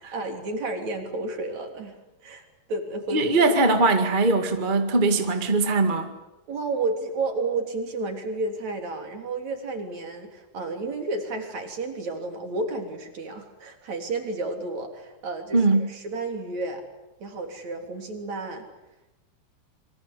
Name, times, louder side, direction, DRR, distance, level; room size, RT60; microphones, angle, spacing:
voice 1, 0.0-2.0 2.2-2.4 2.7-3.4 6.5-16.8 17.2-18.6, right 3 dB, 45° right, 4.5 m, -31 dB
voice 2, 3.1-6.1 15.5-15.9, right 3 dB, 25° right, 1.0 m, -21 dB
28.5 x 24.0 x 8.4 m
omnidirectional pair, 4.6 m